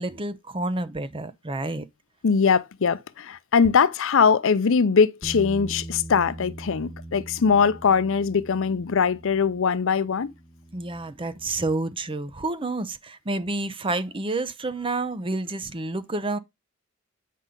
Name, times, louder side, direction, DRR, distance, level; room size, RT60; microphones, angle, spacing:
voice 1, 0.0-1.8 10.7-16.4, right 2 dB, 25° right, 0.7 m, -29 dB
voice 2, 2.2-10.3, left 6 dB, 65° left, 0.6 m, -21 dB
Bass guitar, 5.2-11.5, right 1 dB, 15° left, 1.4 m, -41 dB
8.5 x 5.4 x 3.8 m
head